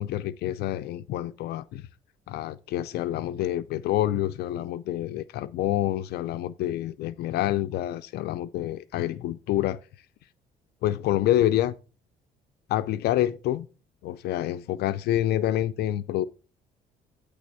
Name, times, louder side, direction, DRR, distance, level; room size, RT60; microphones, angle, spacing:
voice 1, 0.0-1.9 2.3-9.8 10.8-11.7 12.7-13.7 14.0-16.2, left 13 dB, 70° left, 0.5 m, -27 dB
9.4 x 3.4 x 6.7 m
cardioid pair, 110°, 17 cm